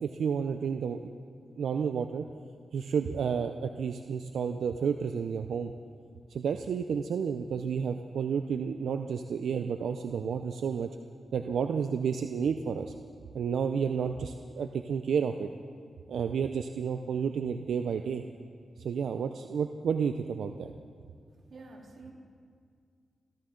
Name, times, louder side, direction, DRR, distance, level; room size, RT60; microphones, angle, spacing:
voice 1, 0.0-1.1 1.5-2.3 2.7-5.7 6.3-10.9 11.3-12.9 13.3-15.5 16.1-18.2 18.8-20.7, right 6 dB, 85° right, 7 dB, 0.5 m, -31 dB
voice 2, 21.5-22.1, right 3 dB, 60° right, -3 dB, 3.5 m, -48 dB
26.0 x 13.0 x 3.8 m, 2.2 s
cardioid pair, 65°, 0 cm